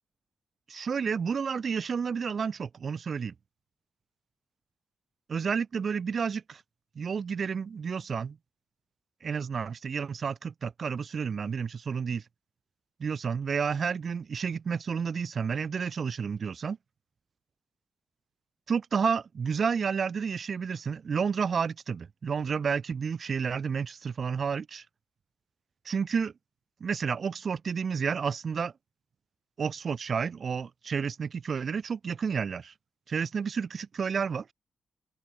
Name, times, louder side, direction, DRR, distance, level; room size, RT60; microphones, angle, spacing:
voice 1, 0.7-3.3 5.3-6.6 6.9-8.4 9.2-12.2 13.0-16.8 18.7-24.8 25.8-26.3 26.8-28.7 29.6-32.7 33.1-34.5, right 6 dB, 40° right, 1.1 m, -30 dB
open air
wide cardioid pair, 175°, 0 cm